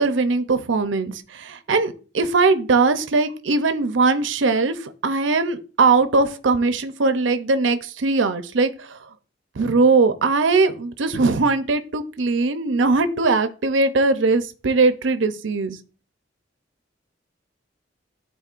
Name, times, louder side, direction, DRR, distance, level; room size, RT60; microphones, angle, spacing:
voice 1, 0.0-9.0 9.6-15.8, right 3 dB, 80° right, 0.6 m, -20 dB
12.0 x 4.1 x 2.5 m
head